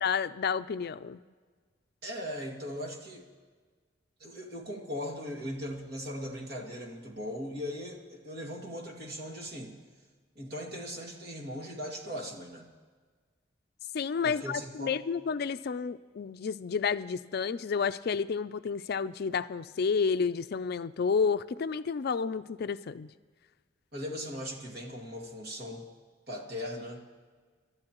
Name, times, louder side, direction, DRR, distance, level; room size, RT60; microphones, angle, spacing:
voice 1, 0.0-1.2 13.9-23.1, left 5 dB, 55° left, 13 dB, 0.4 m, -30 dB
voice 2, 2.0-3.2 4.2-9.8 10.4-12.7 14.2-15.0 23.9-25.9 26.3-27.1, equal, 55° right, 1 dB, 2.3 m, -39 dB
28.0 x 12.5 x 3.0 m, 1.5 s
head